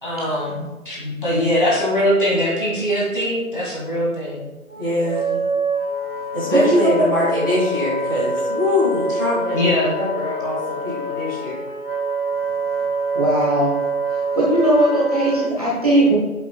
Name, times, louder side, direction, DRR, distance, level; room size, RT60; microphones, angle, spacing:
voice 1, 0.0-0.6 0.9-4.5 9.5-9.9, equal, 35° left, -5 dB, 2.0 m, -21 dB
Wind instrument woodwind instrument, 4.7-15.5, right 2 dB, 85° right, 1.3 m, -25 dB
voice 2, 4.8-5.3 6.3-11.6, left 1 dB, 15° left, -10 dB, 2.2 m, -23 dB
voice 3, 6.5-6.9 13.1-13.7 14.1-16.2, right 1 dB, 25° right, -7 dB, 1.1 m, -19 dB
7.9 x 7.1 x 2.2 m, 1.1 s
figure-of-eight pair, 160°, 43 cm